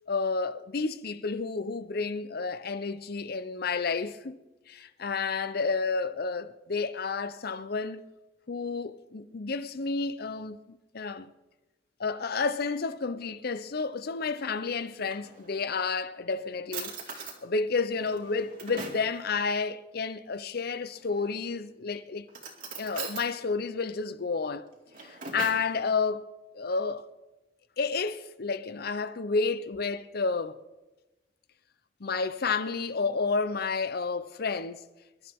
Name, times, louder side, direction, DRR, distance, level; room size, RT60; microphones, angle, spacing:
voice 1, 0.1-4.4 4.7-8.0 8.5-11.3 12.0-22.3 22.8-24.7 25.0-26.3 26.5-27.1 27.8-30.6 32.0-34.8, left 4 dB, 55° left, 0.7 m, -31 dB
Drawer open or close, 14.8-15.8 16.3-16.4 16.7-17.4 18.0-19.1 21.0-21.5 22.3-23.3 24.7-25.7, right 4 dB, 50° right, 2.5 m, -40 dB
25.5 x 12.0 x 3.6 m
head